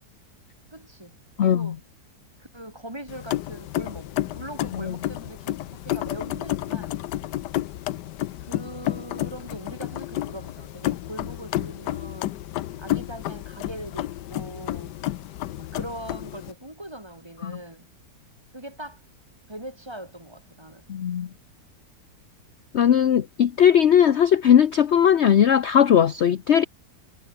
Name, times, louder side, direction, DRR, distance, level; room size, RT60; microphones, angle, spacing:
voice 1, 0.7-1.8 2.4-7.0 8.4-12.3 12.8-15.0 15.6-17.9 18.5-19.0 19.5-20.9, right 1 dB, 15° right, 3.3 m, -41 dB
voice 2, 1.4-1.7 4.7-4.9 17.4-17.5 20.9-21.3 22.7-26.6, left 9 dB, 50° left, 0.9 m, -18 dB
sound 1, 3.1-16.5, left 14 dB, 80° left, 1.3 m, -31 dB
omnidirectional pair, 1.8 m